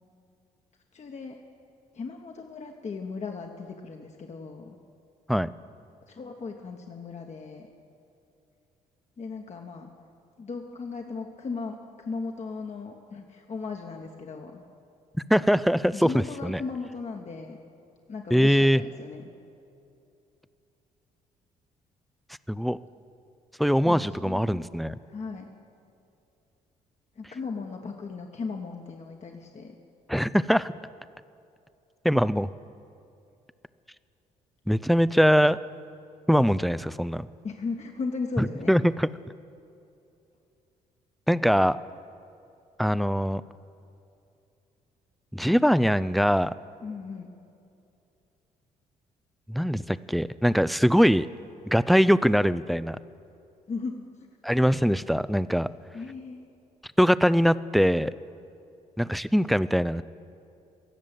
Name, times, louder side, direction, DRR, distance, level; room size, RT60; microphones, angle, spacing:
voice 1, 0.9-1.4 1.9-4.8 6.1-7.7 9.2-9.9 10.4-14.6 15.9-17.6 18.1-19.3 23.8-24.6 25.1-25.5 27.2-29.7 37.4-38.8 46.8-47.3 53.7-54.1 55.9-56.4, left 4 dB, 35° left, 2 dB, 1.2 m, -37 dB
voice 2, 15.3-16.6 18.3-18.8 22.5-22.8 23.6-24.9 30.1-30.7 32.0-32.5 34.7-35.6 36.3-37.3 38.4-39.1 41.3-41.8 42.8-43.4 45.3-46.5 49.5-51.3 51.7-53.0 54.4-55.7 57.0-58.1 59.0-60.0, equal, ahead, 17 dB, 0.4 m, -22 dB
17.5 x 7.5 x 9.0 m, 2.6 s
hypercardioid pair, 45°, 19 cm